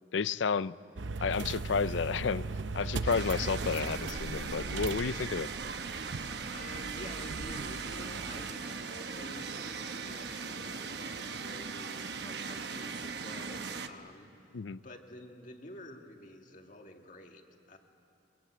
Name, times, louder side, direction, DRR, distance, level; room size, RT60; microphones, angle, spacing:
voice 1, 0.1-0.7 1.2-2.4 2.7-5.5 14.5-14.8, left 5 dB, 80° left, 17 dB, 0.5 m, -31 dB
sound 1, 1.0-8.5, right 3 dB, 85° right, 0.7 m, -38 dB
sound 2, 3.0-13.9, right 5 dB, 60° right, 1.0 m, -39 dB
voice 2, 6.5-17.8, left 1 dB, 45° left, 3 dB, 2.1 m, -49 dB
23.0 x 22.5 x 8.6 m, 2.7 s
head